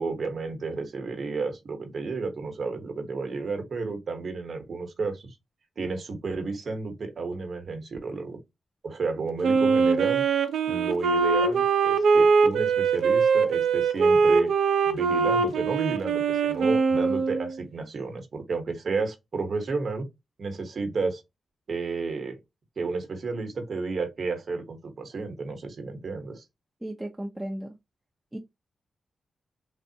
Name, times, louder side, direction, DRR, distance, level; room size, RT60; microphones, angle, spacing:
voice 1, 0.0-5.4 5.8-8.4 8.8-10.2 10.7-14.5 14.8-20.1 20.4-21.2 21.7-22.4 22.8-26.4, right 4 dB, 60° right, 0.9 m, -32 dB
Wind instrument woodwind instrument, 9.4-17.5, right 5 dB, 85° right, 0.5 m, -22 dB
voice 2, 26.8-27.8 28.3-28.4, right 1 dB, 15° right, 0.5 m, -35 dB
3.5 x 2.0 x 2.7 m
cardioid pair, 70°, 0 cm